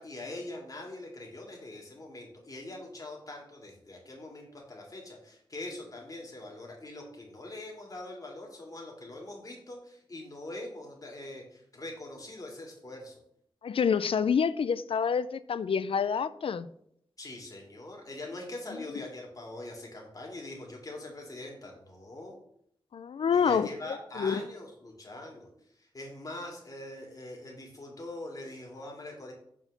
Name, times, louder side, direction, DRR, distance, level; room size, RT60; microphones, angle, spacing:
voice 1, 0.0-13.2 17.2-22.4 23.3-25.5 25.8-29.3, left 2 dB, 40° left, 2.3 m, -43 dB
voice 2, 13.6-16.7 22.9-23.7 24.2-24.4, left 6 dB, 85° left, 0.4 m, -27 dB
6.1 x 4.6 x 6.5 m
wide cardioid pair, 95°, 9 cm